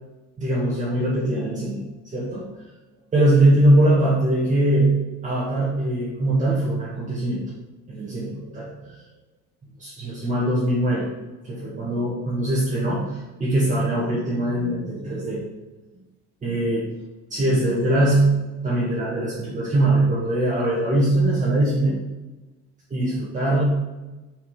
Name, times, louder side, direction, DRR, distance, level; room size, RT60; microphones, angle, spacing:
voice 1, 0.4-1.9 2.1-2.5 3.1-5.0 5.2-7.4 7.9-9.0 9.8-11.1 11.4-15.4 16.4-16.9 17.3-18.3 18.6-22.0 22.9-23.6, right 1 dB, 25° right, -6 dB, 2.1 m, -21 dB
7.1 x 6.8 x 5.1 m, 1.1 s
cardioid pair, 145°, 30 cm